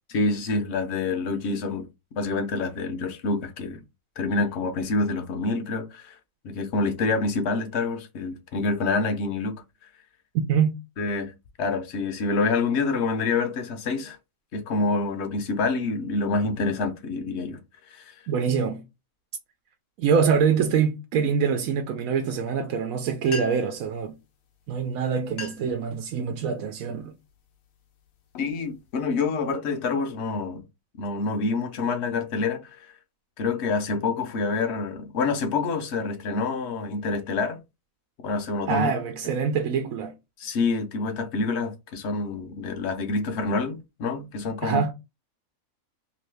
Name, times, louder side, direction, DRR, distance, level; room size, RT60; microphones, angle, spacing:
voice 1, 0.1-1.9 2.1-3.8 4.2-6.2 6.4-9.5 11.0-14.2 14.5-17.6 17.9-18.1 28.4-30.6 31.0-32.7 33.4-37.6 38.2-38.9 40.4-44.8, left 3 dB, 60° left, 0.8 m, -27 dB
voice 2, 10.3-10.8 18.3-18.8 20.0-24.1 24.7-27.1 38.7-40.1 44.6-44.9, right 6 dB, 80° right, 1.0 m, -24 dB
sound 1, 23.0-23.1 23.2-23.8 24.7-24.8 25.2-25.8 26.3-26.6 27.3-27.5 28.1-29.3, left 4 dB, 80° left, 1.1 m, -40 dB
2.9 x 2.6 x 3.2 m
omnidirectional pair, 1.4 m